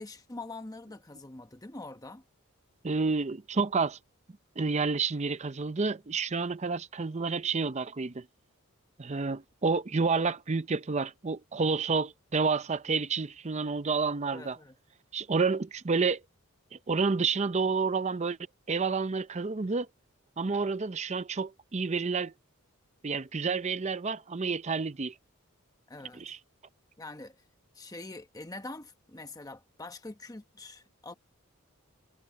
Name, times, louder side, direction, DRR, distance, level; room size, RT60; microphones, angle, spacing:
voice 1, 0.0-2.2 14.3-14.7 25.9-26.3 27.0-27.4 27.7-31.1, left 2 dB, 15° left, 1.0 m, -44 dB
voice 2, 2.8-4.0 4.6-8.2 9.0-14.6 15.1-16.2 16.7-18.4 18.7-19.9 20.4-22.3 23.0-25.1 26.2-26.4, right 4 dB, 30° right, 0.6 m, -29 dB
head